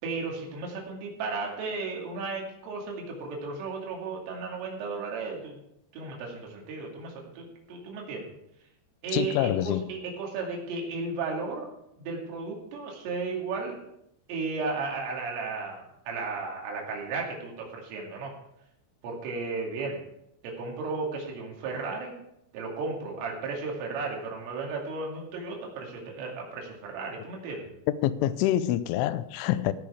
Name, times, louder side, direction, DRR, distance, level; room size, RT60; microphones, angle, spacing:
voice 1, 0.0-5.6 5.9-8.3 9.0-11.7 12.0-13.9 14.3-18.3 19.0-20.0 20.4-22.2 22.5-27.7, right 4 dB, 80° right, 4.9 m, -34 dB
voice 2, 9.1-9.9 28.0-29.7, left 13 dB, 85° left, 2.8 m, -26 dB
16.0 x 6.9 x 4.9 m
omnidirectional pair, 5.9 m